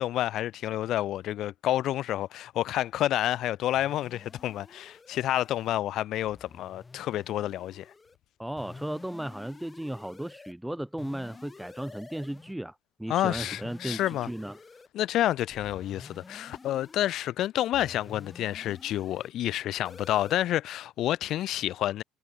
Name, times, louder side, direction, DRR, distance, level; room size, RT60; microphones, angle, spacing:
voice 1, 0.0-7.9 13.1-14.3 14.9-22.0, left 13 dB, 45° left, 0.8 m, -29 dB
sound 1, 3.7-5.7 6.2-8.2 8.6-10.5 11.0-12.5 13.3-14.9 15.5-17.1 17.7-19.3 19.8-20.4, left 4 dB, 15° left, 1.5 m, -49 dB
voice 2, 8.4-14.6, right 1 dB, 5° right, 0.3 m, -36 dB
cardioid pair, 155°, 0 cm